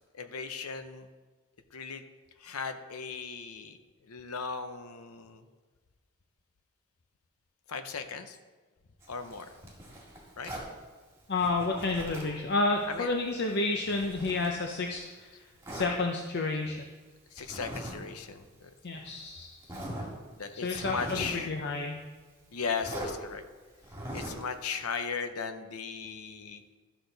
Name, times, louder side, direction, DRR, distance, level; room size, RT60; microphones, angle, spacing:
voice 1, 0.1-1.1 1.7-2.0 2.4-3.8 4.0-5.5 7.7-8.4 9.1-9.5 10.4-10.5 12.8-13.2 17.3-19.0 20.4-21.6 22.5-23.4 24.1-26.6, left 5 dB, 85° left, 8 dB, 0.7 m, -37 dB
Zipper (clothing), 9.0-10.7 11.4-12.4 12.8-15.0 15.6-15.9 17.4-18.0 18.2-18.4 19.1-19.2 19.6-20.1 20.6-21.4 22.8-23.1 23.8-24.5, right 1 dB, 15° right, 1.9 m, -41 dB
voice 2, 11.3-16.9 18.8-19.6 20.6-22.0, left 3 dB, 50° left, 2 dB, 0.6 m, -30 dB
12.5 x 6.0 x 4.0 m, 1.4 s
head